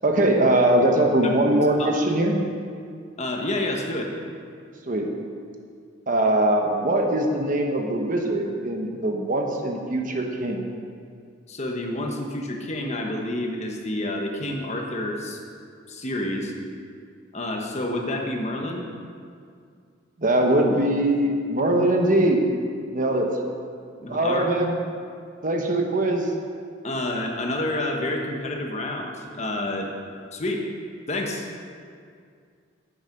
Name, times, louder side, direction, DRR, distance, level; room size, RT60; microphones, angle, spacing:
voice 1, 0.0-2.4 4.9-5.2 6.1-10.6 20.2-22.4 22.9-23.3 24.1-24.8 25.4-26.3, right 1 dB, 45° right, 2 dB, 1.1 m, -22 dB
voice 2, 3.2-4.1 11.5-15.4 15.9-16.5 17.3-18.9 24.0-24.4 26.8-29.9 30.3-30.7 31.1-31.4, left 1 dB, 35° left, 1 dB, 1.3 m, -29 dB
10.0 x 9.0 x 5.3 m, 2.3 s
head